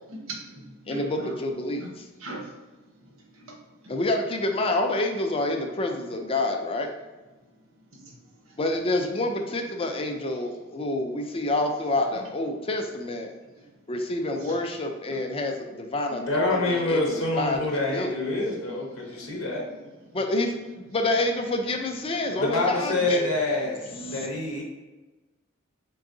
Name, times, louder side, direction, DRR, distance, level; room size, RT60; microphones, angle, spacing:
voice 1, 0.1-1.3 1.8-1.9 2.2-2.5 3.0-3.5 3.8-3.9 7.9-8.1 8.5-8.6 12.0-12.1 14.4-14.6 15.1-15.2 18.4-18.8 19.1-19.8 22.3-22.4 24.0-24.4, right 2 dB, 85° right, 0 dB, 0.9 m, -41 dB
voice 2, 0.9-2.0 3.9-6.9 8.6-13.3 13.9-18.1 20.1-23.3 23.9-24.3, left 2 dB, 30° left, 4 dB, 0.4 m, -28 dB
voice 3, 16.1-19.7 22.4-24.6, left 2 dB, 85° left, -1 dB, 0.9 m, -27 dB
3.9 x 3.4 x 2.6 m, 1.2 s
head